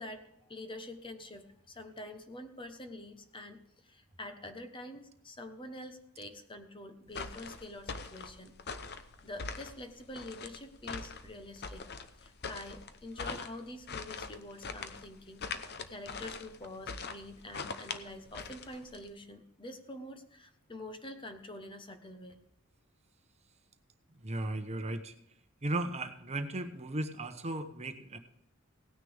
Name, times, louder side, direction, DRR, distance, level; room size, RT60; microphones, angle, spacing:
voice 1, 0.0-8.5 8.9-11.8 12.2-15.4 15.9-22.4, left 1 dB, 25° left, 8 dB, 1.1 m, -46 dB
sound 1, 7.1-19.1, left 5 dB, 50° left, 0.9 m, -42 dB
voice 2, 24.2-25.1 25.6-28.2, right 2 dB, 30° right, 8 dB, 1.0 m, -36 dB
17.5 x 9.9 x 3.5 m, 0.79 s
head